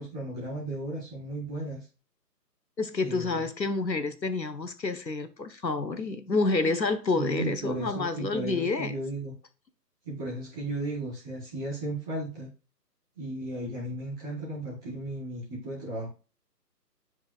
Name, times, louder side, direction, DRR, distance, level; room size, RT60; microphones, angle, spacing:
voice 1, 0.0-1.9 3.0-3.5 7.1-9.3 10.0-12.5 13.2-16.1, right 1 dB, 5° right, 0.7 m, -35 dB
voice 2, 2.8-8.9, left 3 dB, 85° left, 1.3 m, -29 dB
10.5 x 4.7 x 2.4 m
figure-of-eight pair, 145°, 50 cm